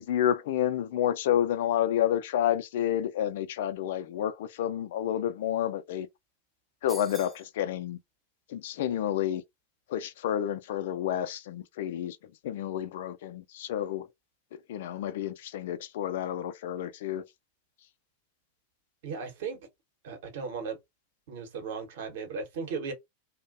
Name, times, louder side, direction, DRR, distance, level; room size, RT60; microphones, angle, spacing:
voice 1, 0.0-6.1 6.8-8.0 8.5-9.4 9.9-12.2 12.4-14.1 14.5-17.2, left 11 dB, 55° left, 0.3 m, -30 dB
sound 1, 6.9-7.5, right 3 dB, 10° right, 0.4 m, -45 dB
voice 2, 19.0-19.6 20.0-20.8 21.3-22.9, right 5 dB, 55° right, 0.9 m, -36 dB
2.5 x 2.1 x 2.5 m
figure-of-eight pair, 90°, 0 cm